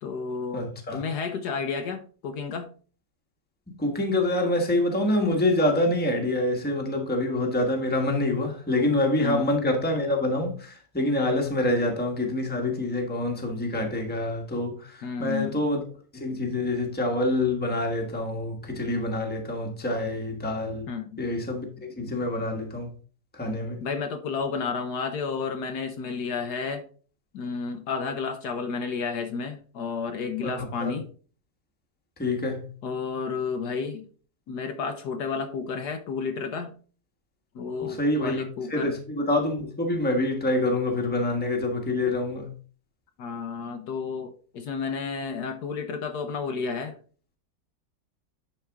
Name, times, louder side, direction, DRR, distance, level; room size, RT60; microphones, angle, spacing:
voice 1, 0.0-2.7 9.2-9.5 15.0-15.5 20.9-21.2 23.8-26.8 27.3-31.1 32.8-34.1 34.5-36.7 37.5-39.0 43.2-47.0, left 5 dB, 65° left, 1.3 m, -31 dB
voice 2, 0.5-1.0 3.8-15.8 16.1-20.9 21.2-22.9 23.3-23.8 30.4-30.5 30.8-31.0 32.2-32.7 37.8-38.4 38.7-42.5, left 1 dB, 5° left, 1.1 m, -26 dB
10.0 x 4.3 x 3.5 m
omnidirectional pair, 2.0 m